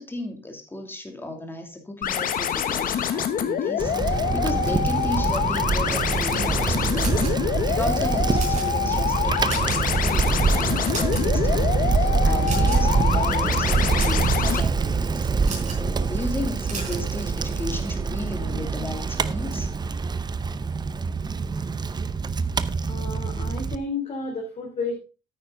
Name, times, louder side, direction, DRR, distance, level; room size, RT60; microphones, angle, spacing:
voice 1, 0.0-7.3 7.7-19.7, left 1 dB, 15° left, 4 dB, 2.7 m, -35 dB
sound 1, 2.0-14.6, left 9 dB, 55° left, 1.2 m, -26 dB
Bicycle, 3.8-23.8, right 4 dB, 25° right, 0.7 m, -25 dB
sound 2, 6.9-7.7 8.2-8.7 9.2-9.9 10.2-10.4 10.7-11.5 12.4-13.0 13.7-14.3 15.4-15.8 16.6-17.1, right 5 dB, 45° right, 4.2 m, -34 dB
voice 2, 22.9-25.0, left 3 dB, 40° left, -2 dB, 3.3 m, -31 dB
9.5 x 9.2 x 3.8 m, 0.32 s
cardioid pair, 110°, 17 cm